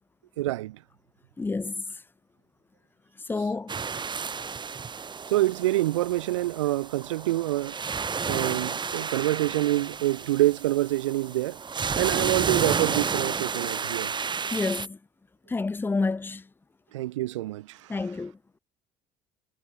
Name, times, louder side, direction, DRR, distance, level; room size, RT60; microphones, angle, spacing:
voice 1, 0.4-0.8 5.3-7.8 8.3-11.6 12.0-14.1 16.9-18.0, right 16 dB, 70° right, 0.7 m, -26 dB
voice 2, 1.4-1.8 3.3-3.7 14.5-15.0 15.5-16.4 17.9-18.3, left 3 dB, 15° left, 0.6 m, -28 dB
sound 1, 3.7-14.9, right 5 dB, 30° right, 2.9 m, -31 dB
figure-of-eight pair, 55°, 16 cm